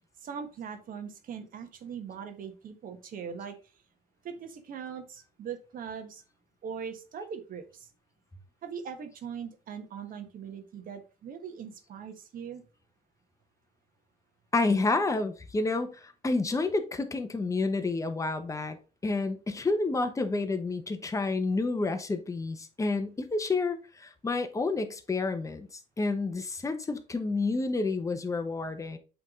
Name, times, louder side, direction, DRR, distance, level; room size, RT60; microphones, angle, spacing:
voice 1, 0.2-3.5 4.2-6.2 6.6-7.9 8.6-12.6, right 7 dB, 55° right, 1.4 m, -40 dB
voice 2, 14.5-18.8 19.0-29.0, left 3 dB, 20° left, 0.9 m, -29 dB
8.1 x 3.6 x 3.7 m
cardioid pair, 110°, 17 cm